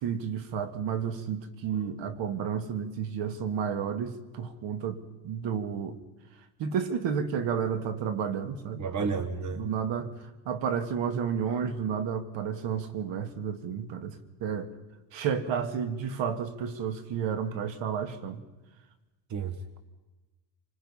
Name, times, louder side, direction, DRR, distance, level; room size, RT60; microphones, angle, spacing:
voice 1, 0.0-6.0 6.6-9.2 9.5-14.7 15.1-18.4, right 7 dB, 65° right, 10 dB, 2.0 m, -31 dB
voice 2, 8.8-9.6 19.3-19.8, right 5 dB, 35° right, 10 dB, 1.4 m, -32 dB
27.0 x 20.5 x 5.6 m, 1.1 s
cardioid pair, 125°, 48 cm